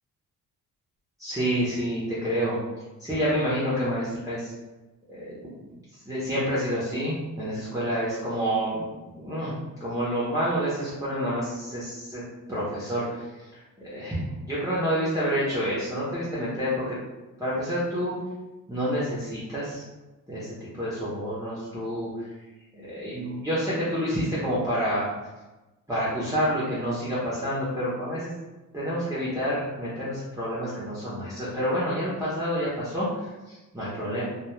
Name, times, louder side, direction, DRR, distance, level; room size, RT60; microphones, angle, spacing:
voice 1, 1.2-2.6 3.0-4.5 5.1-5.7 6.1-12.2 12.5-13.3 13.5-14.2 14.4-17.0 17.4-18.2 18.7-19.8 20.3-22.3 22.7-25.1 25.9-28.3 28.7-34.2, equal, 10° right, -10 dB, 0.6 m, -28 dB
2.3 x 2.2 x 3.0 m, 1.1 s
cardioid pair, 110°, 33 cm